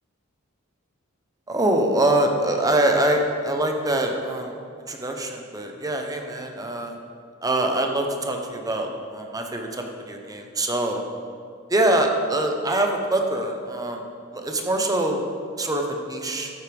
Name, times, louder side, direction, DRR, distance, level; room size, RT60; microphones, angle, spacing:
voice 1, 1.5-4.5 4.9-7.0 7.4-11.0 11.7-14.0 14.3-15.3 15.6-16.5, right 1 dB, 15° right, 3 dB, 0.8 m, -24 dB
13.5 x 8.0 x 3.5 m, 2.3 s
head